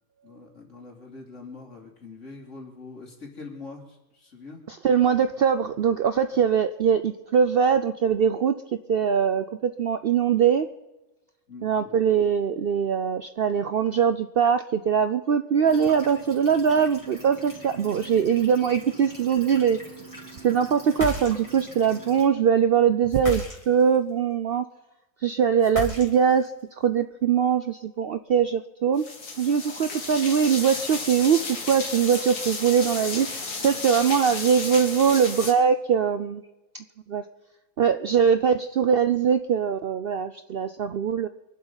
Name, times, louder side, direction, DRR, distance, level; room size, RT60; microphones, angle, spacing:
voice 1, 0.2-4.6 11.5-11.9, left 3 dB, 50° left, 0 dB, 3.2 m, -43 dB
voice 2, 4.7-8.5 8.9-10.7 11.6-19.8 20.4-24.6 25.2-26.5 26.8-29.0 29.4-36.4 36.7-37.2 37.8-41.3, right 7 dB, 85° right, 10 dB, 0.5 m, -22 dB
sound 1, 15.6-22.2, right 2 dB, 10° right, 3.6 m, -43 dB
sound 2, 20.9-21.7 23.1-24.0 25.6-26.5, left 1 dB, 20° left, 2.0 m, -33 dB
sound 3, 29.0-35.5, left 3 dB, 75° left, 2.5 m, -33 dB
24.5 x 11.5 x 4.0 m, 1.0 s
omnidirectional pair, 1.7 m